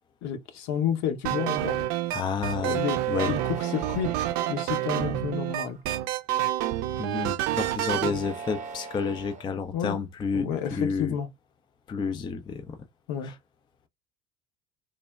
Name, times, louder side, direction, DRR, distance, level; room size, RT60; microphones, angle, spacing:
voice 1, 0.2-1.9 2.6-3.0 3.2-4.1 4.5-5.8 8.0-8.2 9.7-10.0 10.3-11.3 13.1-13.3, left 8 dB, 60° left, 0.8 m, -30 dB
sound 1, 1.2-8.2, right 14 dB, 60° right, 0.5 m, -28 dB
voice 2, 2.1-2.8 3.1-3.3 7.0-10.5 10.7-11.1 11.9-12.6, left 5 dB, 15° left, 0.3 m, -30 dB
sound 2, 3.3-4.7 5.4-6.0 7.9-9.4, right 4 dB, 25° right, 0.9 m, -41 dB
3.2 x 2.0 x 2.3 m
hypercardioid pair, 75°, 32 cm